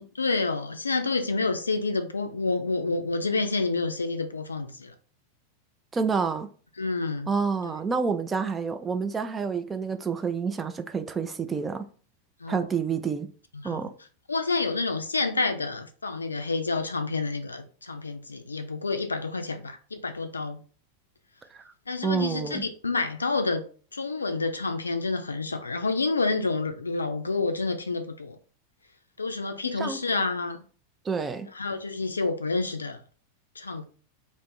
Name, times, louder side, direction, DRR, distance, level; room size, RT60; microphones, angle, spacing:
voice 1, 0.2-4.9 6.8-7.3 7.6-7.7 12.4-12.7 13.5-13.9 14.3-20.6 21.9-23.6 23.9-28.4 29.2-30.6 31.5-33.0 33.6-33.8, left 3 dB, 75° left, 0.4 m, -29 dB
voice 2, 5.9-6.5 7.3-11.9 12.5-13.3 13.6-13.9 22.0-22.6 29.8-30.0 31.1-31.5, right 5 dB, 15° right, 0.3 m, -28 dB
2.4 x 2.0 x 3.8 m
figure-of-eight pair, 90°, 0 cm